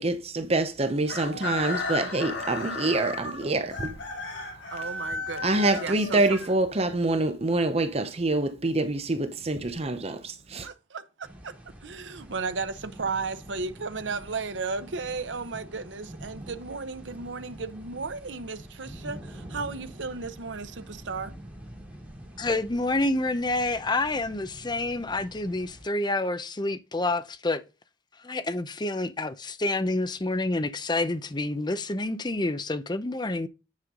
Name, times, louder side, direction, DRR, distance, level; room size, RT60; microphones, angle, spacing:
voice 1, 0.0-4.0 5.4-10.7, right 2 dB, 35° right, 0.8 m, -26 dB
Chicken rooster, 1.0-7.0, left 3 dB, 90° left, 5.2 m, -34 dB
voice 2, 4.7-6.4 10.6-21.4, right 4 dB, 90° right, 0.9 m, -35 dB
sound 1, 11.2-25.8, right 1 dB, 10° right, 2.8 m, -46 dB
voice 3, 22.4-27.6 28.2-33.5, left 2 dB, 25° left, 0.7 m, -28 dB
9.8 x 5.6 x 3.7 m
head